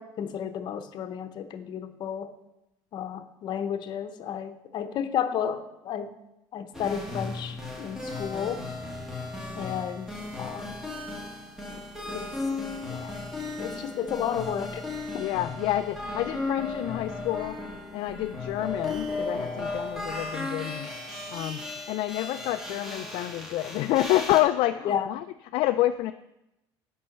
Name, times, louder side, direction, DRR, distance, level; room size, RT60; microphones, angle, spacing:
voice 1, 0.0-2.3 2.9-6.1 6.5-8.6 9.5-10.8 11.7-12.3 12.9-13.2 13.6-14.8 15.1-15.3 24.8-25.1, left 8 dB, 50° left, 9 dB, 0.8 m, -32 dB
sound 1, 6.7-24.4, left 2 dB, 5° right, 1.6 m, -35 dB
voice 2, 15.2-17.6 17.9-20.9 21.3-25.3 25.5-26.1, left 15 dB, 70° left, 8 dB, 0.4 m, -28 dB
8.7 x 5.5 x 6.4 m, 0.90 s
cardioid pair, 135°, 9 cm